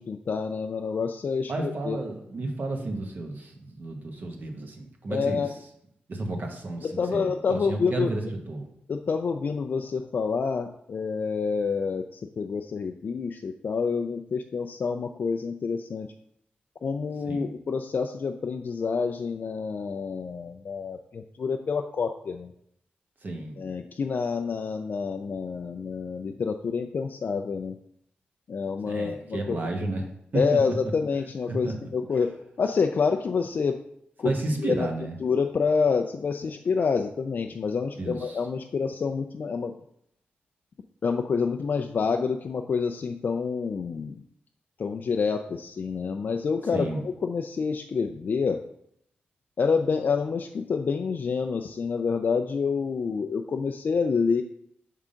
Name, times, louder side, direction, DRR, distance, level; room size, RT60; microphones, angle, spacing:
voice 1, 0.0-2.0 5.1-5.5 6.8-8.1 8.9-16.1 16.8-22.5 23.6-27.8 28.5-29.6 30.3-33.8 34.2-34.3 34.6-34.9 35.2-39.7 41.0-44.2 44.8-48.6 49.6-54.4, left 5 dB, 55° left, 5 dB, 0.4 m, -28 dB
voice 2, 1.5-5.4 6.1-8.7 17.2-17.5 23.2-23.6 28.8-30.0 30.3-30.6 31.5-31.7 34.2-35.2 38.0-38.4 46.7-47.0, right 2 dB, 50° right, 2 dB, 1.2 m, -32 dB
5.5 x 3.6 x 5.0 m, 0.73 s
cardioid pair, 80°, 4 cm